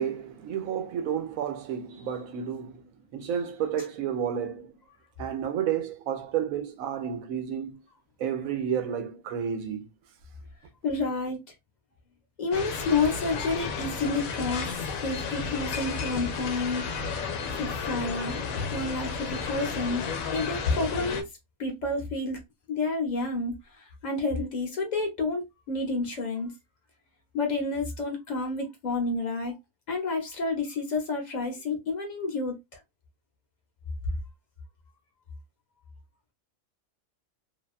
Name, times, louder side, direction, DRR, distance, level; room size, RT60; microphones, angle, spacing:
voice 1, 0.0-4.7 5.2-7.8 8.2-9.9, right 8 dB, 85° right, 1.0 m, -31 dB
voice 2, 10.8-11.4 12.4-16.9 17.6-18.4 18.7-20.0 20.3-21.3 21.6-22.4 22.7-23.5 24.0-26.5 27.3-29.6 29.9-32.6, left 3 dB, 40° left, 0.8 m, -29 dB
sound 1, 12.5-21.2, left 5 dB, 85° left, 1.0 m, -32 dB
2.8 x 2.2 x 2.4 m
omnidirectional pair, 1.4 m